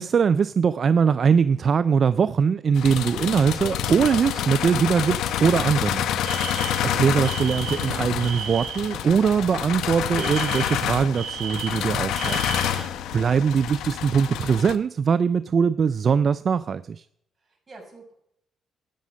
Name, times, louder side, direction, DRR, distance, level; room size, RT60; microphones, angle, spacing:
voice 1, 0.0-6.1 6.6-17.0, right 6 dB, 50° right, 15 dB, 0.4 m, -22 dB
sound 1, 2.7-14.8, left 10 dB, 85° left, 0.8 m, -28 dB
Alarm, 6.2-9.0 10.2-12.9, right 9 dB, 80° right, 1.3 m, -35 dB
voice 2, 17.4-18.1, right 2 dB, 25° right, 0 dB, 6.0 m, -48 dB
13.0 x 9.2 x 6.3 m, 0.73 s
cardioid pair, 90°, 0 cm